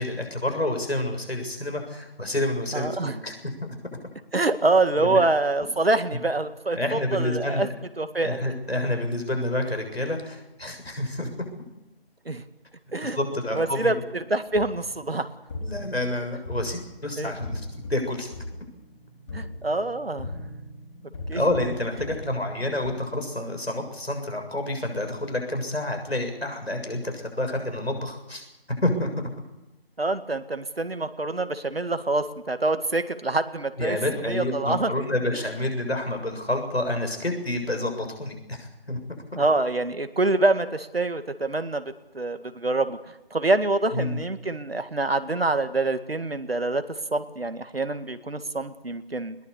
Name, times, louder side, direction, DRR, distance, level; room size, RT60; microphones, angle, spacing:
voice 1, 0.0-3.3 5.0-5.3 6.8-7.7 8.2-11.3 13.0-14.0 15.6-18.3 21.3-28.4 28.8-29.3 33.8-39.0 43.9-44.2, left 1 dB, 85° left, 4 dB, 7.2 m, -28 dB
voice 2, 2.7-3.2 4.3-7.7 8.0-8.4 12.3-12.4 12.9-13.2 13.5-15.3 17.2-17.3 19.3-20.3 21.3-21.5 30.0-34.9 39.3-49.4, right 2 dB, 75° right, 10 dB, 2.0 m, -26 dB
sound 1, 14.5-22.9, left 1 dB, 30° left, 3.9 m, -39 dB
21.0 x 19.0 x 8.4 m, 0.93 s
figure-of-eight pair, 160°, 30 cm